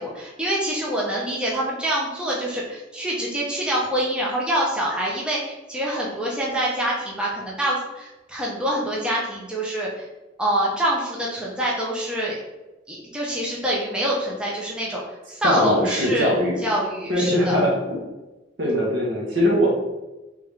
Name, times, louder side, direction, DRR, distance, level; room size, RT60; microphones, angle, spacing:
voice 1, 0.0-10.0 10.4-12.4 12.9-15.0 15.3-17.7 18.6-18.9, right 1 dB, 5° right, -5 dB, 0.6 m, -26 dB
voice 2, 15.4-16.6 17.1-18.0 18.6-19.7, left 1 dB, 65° right, -2 dB, 1.1 m, -21 dB
3.5 x 3.4 x 3.2 m, 1.1 s
head